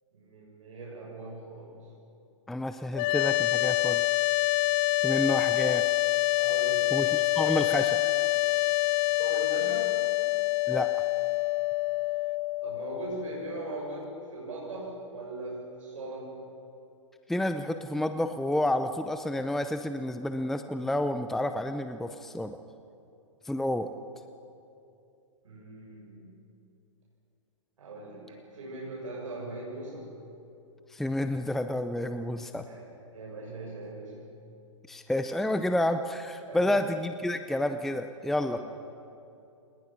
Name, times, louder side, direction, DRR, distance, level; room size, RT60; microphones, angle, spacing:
voice 1, 0.1-1.9 6.4-7.0 9.2-9.9 12.6-16.4 25.4-26.3 27.8-30.2 32.6-34.2 36.5-36.8 38.5-38.6, right 2 dB, 80° right, -3 dB, 6.6 m, -40 dB
voice 2, 2.5-4.0 5.0-5.8 6.9-8.0 10.7-10.9 17.3-22.6 23.4-23.9 30.9-32.6 34.9-38.6, left 1 dB, ahead, 8 dB, 0.6 m, -29 dB
sound 1, 2.9-14.0, left 19 dB, 35° left, 0.7 m, -27 dB
28.0 x 20.5 x 6.0 m, 2.7 s
hypercardioid pair, 135°, 17 cm